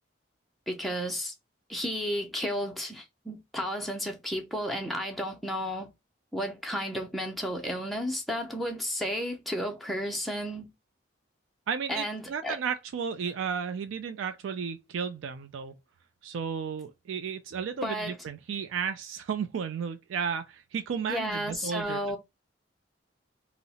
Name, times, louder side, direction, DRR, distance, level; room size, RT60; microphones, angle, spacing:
voice 1, 0.7-1.3 1.7-5.9 6.3-10.7 11.9-12.6 17.8-18.2 21.1-22.2, equal, ahead, 0.4 m, -32 dB
voice 2, 11.7-15.7 16.2-22.2, right 6 dB, 85° right, 0.3 m, -33 dB
2.7 x 2.0 x 4.0 m
head